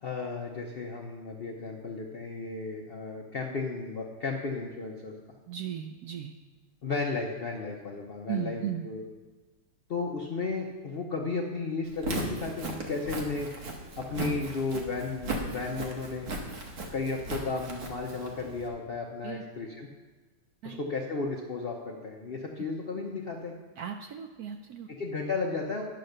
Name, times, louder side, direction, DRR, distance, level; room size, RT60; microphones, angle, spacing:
voice 1, 0.0-5.1 6.8-9.1 9.9-13.5 14.0-16.3 16.9-19.9 20.6-23.5 25.0-25.8, left 4 dB, 75° left, 0 dB, 0.5 m, -34 dB
voice 2, 5.5-6.3 8.3-8.9 14.2-14.4 19.2-19.4 20.6-20.8 23.8-24.9, right 9 dB, 75° right, 5 dB, 0.8 m, -36 dB
Walk footsteps, 11.9-18.7, right 2 dB, 50° right, 1.6 m, -37 dB
10.5 x 5.9 x 6.5 m, 1.3 s
omnidirectional pair, 2.2 m